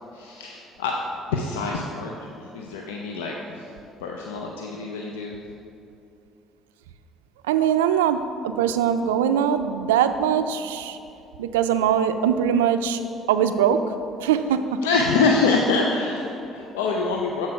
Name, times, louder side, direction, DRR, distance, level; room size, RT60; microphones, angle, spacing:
voice 1, 0.1-1.0 1.3-3.7 4.0-5.4 14.8-17.5, left 4 dB, 85° left, 0 dB, 0.5 m, -25 dB
voice 2, 7.5-11.0 11.4-13.0 13.3-13.8 14.2-14.8, right 8 dB, 90° right, 10 dB, 0.3 m, -22 dB
7.5 x 4.3 x 5.8 m, 2.7 s
hypercardioid pair, 60°, 0 cm